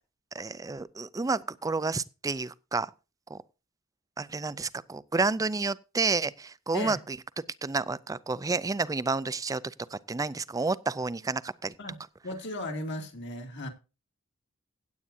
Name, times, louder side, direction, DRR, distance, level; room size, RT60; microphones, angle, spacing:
voice 1, 0.3-2.9 3.3-3.4 4.2-7.2 7.6-11.8, right 3 dB, 15° right, 0.4 m, -30 dB
voice 2, 12.2-13.7, left 1 dB, 60° left, 2.4 m, -36 dB
16.5 x 8.5 x 2.6 m
head